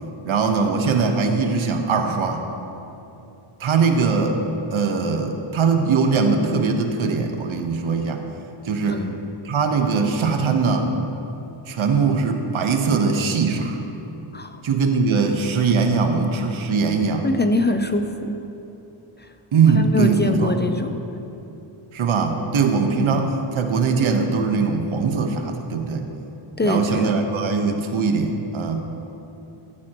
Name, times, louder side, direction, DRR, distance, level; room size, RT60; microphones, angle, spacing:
voice 1, 0.2-2.4 3.6-4.4 4.7-8.3 8.6-9.0 9.4-10.9 11.7-13.8 14.6-17.3 19.5-20.6 21.9-26.1 26.6-28.9, right 4 dB, 70° right, 4 dB, 1.3 m, -21 dB
voice 2, 17.2-18.4 19.9-20.9 23.0-23.2 26.6-27.1, left 1 dB, 20° left, 6 dB, 0.7 m, -23 dB
14.5 x 14.5 x 3.0 m, 2.9 s
cardioid pair, 95°, 49 cm